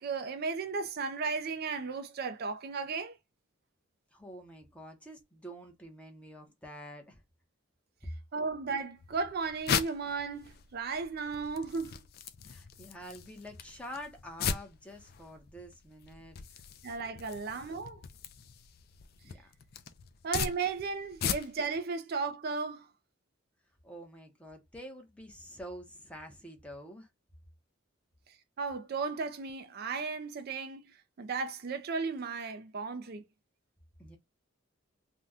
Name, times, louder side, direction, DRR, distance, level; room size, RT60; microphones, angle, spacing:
voice 1, 0.0-3.2 8.3-12.0 16.8-18.0 20.2-22.9 28.6-33.2, right 4 dB, 50° right, 0.4 m, -35 dB
voice 2, 4.1-7.2 12.4-16.4 19.2-19.5 23.8-27.1 34.0-34.2, equal, 5° left, 0.7 m, -47 dB
sound 1, 9.0-21.8, left 7 dB, 45° left, 0.4 m, -39 dB
2.7 x 2.1 x 3.5 m
head